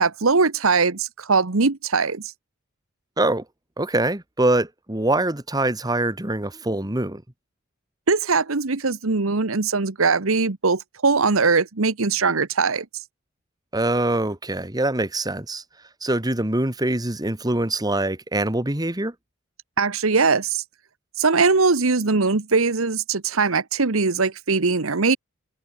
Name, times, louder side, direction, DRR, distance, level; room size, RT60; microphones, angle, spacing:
voice 1, 0.0-2.2 8.1-12.8 19.8-20.6 21.2-25.2, right 4 dB, 85° right, 1.2 m, -21 dB
voice 2, 3.8-7.2 13.7-15.6 16.0-19.1, right 2 dB, 20° right, 1.7 m, -24 dB
head